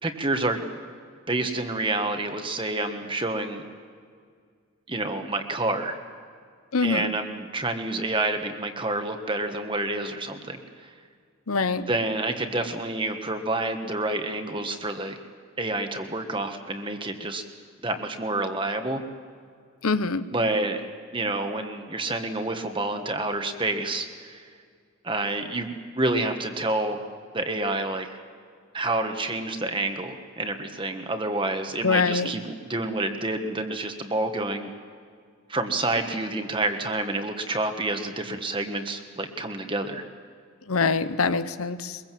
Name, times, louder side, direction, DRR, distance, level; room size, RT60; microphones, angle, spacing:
voice 1, 0.0-0.6 1.3-3.6 4.9-6.0 6.8-10.6 11.9-15.2 15.6-17.4 17.8-19.0 20.3-20.9 21.1-24.4 25.0-27.0 27.3-28.1 28.7-34.7 35.5-40.0, right 2 dB, 20° right, 6 dB, 1.5 m, -28 dB
voice 2, 6.7-7.1 11.5-11.9 19.8-20.2 31.8-32.3 40.7-42.0, left 4 dB, 75° left, 12 dB, 0.9 m, -24 dB
23.0 x 22.5 x 7.7 m, 2.1 s
head